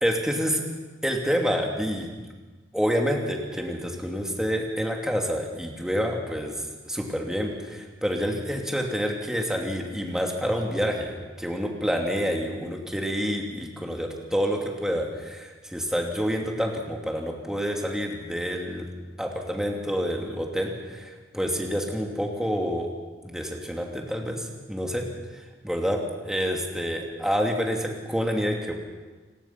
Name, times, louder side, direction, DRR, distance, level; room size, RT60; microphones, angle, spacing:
voice 1, 0.0-0.6 1.0-2.2 2.7-6.6 6.9-18.9 19.2-22.9 23.2-25.1 25.3-28.7, equal, 5° right, 1 dB, 2.7 m, -28 dB
30.0 x 19.0 x 5.9 m, 1.3 s
head